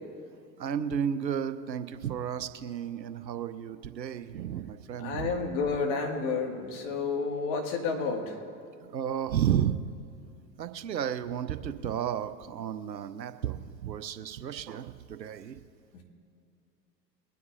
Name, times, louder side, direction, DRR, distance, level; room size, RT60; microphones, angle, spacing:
voice 1, 0.6-5.3 8.8-9.8 10.6-15.6, right 9 dB, 80° right, 11 dB, 0.8 m, -32 dB
voice 2, 5.0-8.3 15.9-16.0, left 4 dB, 45° left, 1 dB, 2.3 m, -30 dB
24.0 x 9.5 x 2.7 m, 2.5 s
figure-of-eight pair, 90°, 50 cm